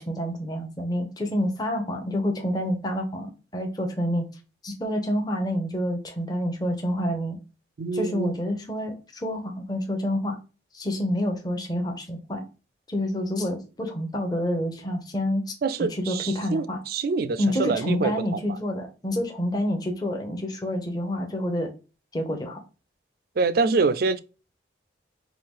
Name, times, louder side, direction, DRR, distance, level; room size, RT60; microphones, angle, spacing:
voice 1, 0.0-4.3 4.6-7.4 7.9-10.4 10.7-12.5 12.9-16.8 17.4-21.7 22.1-22.6, equal, 20° left, 0.8 m, -28 dB
voice 2, 7.8-8.3 15.6-18.6 23.4-24.2, right 4 dB, 55° right, 0.4 m, -26 dB
4.6 x 2.3 x 3.6 m
head